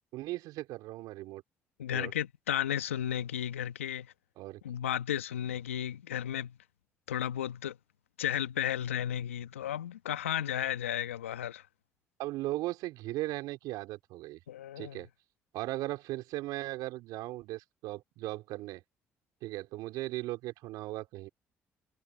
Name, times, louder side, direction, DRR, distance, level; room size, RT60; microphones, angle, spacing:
voice 1, 0.0-1.4 1.9-2.1 4.4-4.6 12.2-14.4 14.8-15.1 15.5-18.8 19.4-21.3, right 17 dB, 70° right, 3.7 m, -37 dB
voice 2, 1.8-4.1 4.6-6.6 7.1-7.8 8.2-11.6 14.5-15.0, left 10 dB, 90° left, 1.3 m, -33 dB
hypercardioid pair, 50°, 7 cm